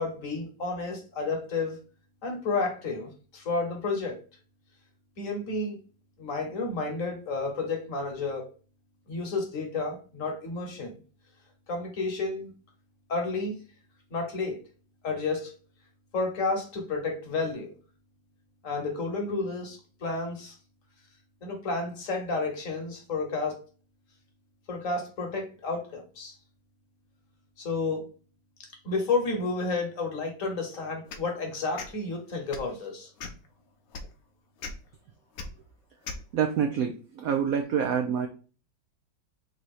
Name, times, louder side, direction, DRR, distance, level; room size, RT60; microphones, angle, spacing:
voice 1, 0.0-1.8 2.2-4.2 5.2-5.8 6.2-8.5 9.1-10.9 11.7-12.5 13.1-13.6 14.1-14.6 15.0-15.5 16.1-17.8 18.6-20.6 21.4-23.6 24.7-26.3 27.6-28.1 28.8-33.1, left 3 dB, 50° left, 2 dB, 1.2 m, -31 dB
sound 1, 31.1-31.3 31.8-31.9 32.5-32.7 33.2-33.5 33.9-34.1 34.6-34.7 35.4-35.5 36.0-36.2, left 5 dB, 65° left, 0.9 m, -38 dB
voice 2, 36.3-38.3, right 7 dB, 90° right, 5 dB, 0.7 m, -27 dB
3.8 x 2.8 x 4.7 m, 0.37 s
omnidirectional pair, 2.1 m